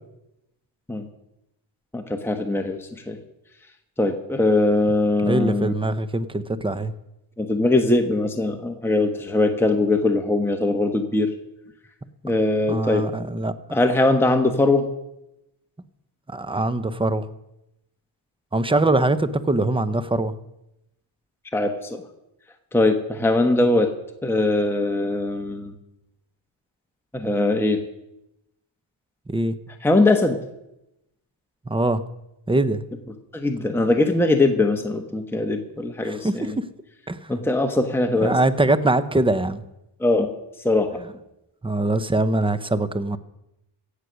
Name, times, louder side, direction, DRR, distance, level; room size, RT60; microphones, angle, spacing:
voice 1, 1.9-3.2 4.0-5.7 7.4-11.3 12.2-13.0 13.7-14.9 21.5-22.0 22.7-23.9 24.2-25.7 27.1-27.8 29.8-30.4 33.3-36.6 37.3-38.4 40.0-40.3 40.6-41.1, left 2 dB, 5° left, 5 dB, 1.1 m, -21 dB
voice 2, 5.2-6.9 12.7-13.5 16.3-17.3 18.5-20.3 29.3-29.6 31.7-32.0 32.5-32.8 36.0-36.7 37.1-37.4 38.2-39.6 41.6-43.2, right 2 dB, 10° right, 14 dB, 0.7 m, -22 dB
16.0 x 8.3 x 6.3 m, 0.88 s
wide cardioid pair, 100°, 50 cm